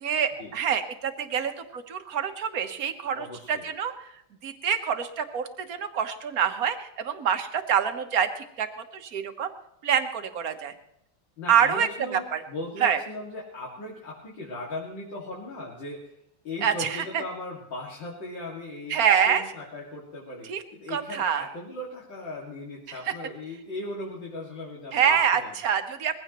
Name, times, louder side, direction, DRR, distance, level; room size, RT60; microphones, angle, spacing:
voice 1, 0.0-3.9 4.4-8.7 8.9-9.5 9.8-10.7 11.5-12.4 12.8-13.0 16.6-17.2 18.9-19.4 20.5-20.6 20.9-21.5 24.9-26.1, right 8 dB, 50° right, 8 dB, 1.4 m, -26 dB
voice 2, 3.1-3.6 11.4-16.1 16.4-19.0 19.3-25.5, left 2 dB, 65° left, -4 dB, 2.9 m, -38 dB
21.0 x 16.0 x 3.0 m, 0.77 s
omnidirectional pair, 2.2 m